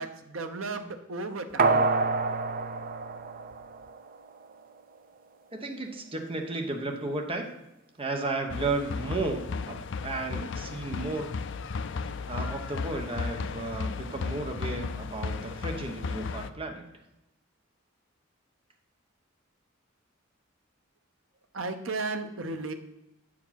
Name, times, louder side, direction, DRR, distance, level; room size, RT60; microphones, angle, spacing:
voice 1, 0.0-1.9 21.5-22.7, right 3 dB, 75° right, 7 dB, 0.8 m, -34 dB
sound 1, 1.6-4.1 4.5-4.6, right 3 dB, 45° right, 0.5 m, -27 dB
voice 2, 5.5-7.5 8.0-11.3 12.3-16.9, right 2 dB, 25° right, 3 dB, 1.0 m, -33 dB
sound 2, 8.5-16.5, left 4 dB, 60° left, 0.4 m, -35 dB
8.3 x 4.8 x 5.8 m, 0.93 s
head